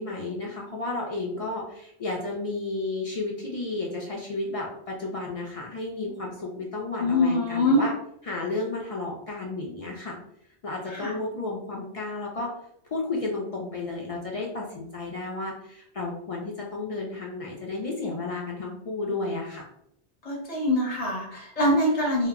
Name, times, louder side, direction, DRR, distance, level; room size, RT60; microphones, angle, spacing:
voice 1, 0.0-7.9 8.2-10.2 10.6-12.5 12.9-19.7, left 3 dB, 60° left, -2 dB, 0.3 m, -32 dB
voice 2, 7.0-7.8 10.9-11.1 20.2-22.3, left 1 dB, 40° left, -2 dB, 0.8 m, -24 dB
2.1 x 2.0 x 3.4 m, 0.73 s
omnidirectional pair, 1.2 m